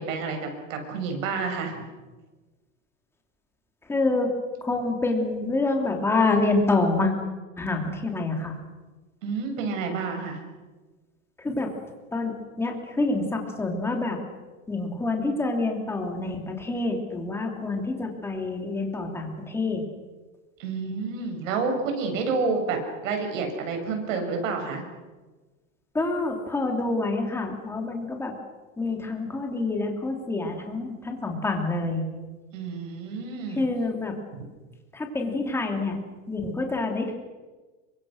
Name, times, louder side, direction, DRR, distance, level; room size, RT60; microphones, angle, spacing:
voice 1, 0.0-1.9 9.2-10.4 20.6-24.8 32.5-33.7, right 4 dB, 70° right, 4 dB, 7.4 m, -29 dB
voice 2, 3.9-4.3 4.6-7.1 7.6-8.6 11.4-11.7 12.1-14.2 14.7-19.8 25.9-28.3 28.8-32.0 33.5-34.2 34.9-36.0 36.3-37.1, left 3 dB, 5° left, 2 dB, 3.0 m, -27 dB
29.0 x 25.0 x 6.5 m, 1.3 s
supercardioid pair, 170°, 40 cm